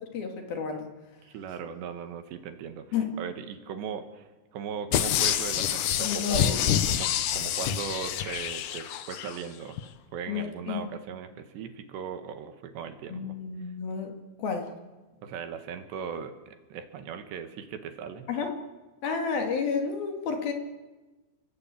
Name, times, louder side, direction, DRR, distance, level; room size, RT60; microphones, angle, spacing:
voice 1, 0.1-0.9 2.9-3.1 6.0-6.6 10.3-10.9 13.1-14.1 14.4-14.7 18.3-18.5 19.0-20.5, left 5 dB, 60° left, 3 dB, 4.1 m, -31 dB
voice 2, 1.2-2.9 3.2-9.8 10.1-13.4 15.2-18.3, right 7 dB, 70° right, 7 dB, 3.7 m, -38 dB
sound 1, 4.9-9.4 9.8-9.9, left 10 dB, 90° left, 1.8 m, -27 dB
29.5 x 19.5 x 8.5 m, 1.2 s
omnidirectional pair, 5.3 m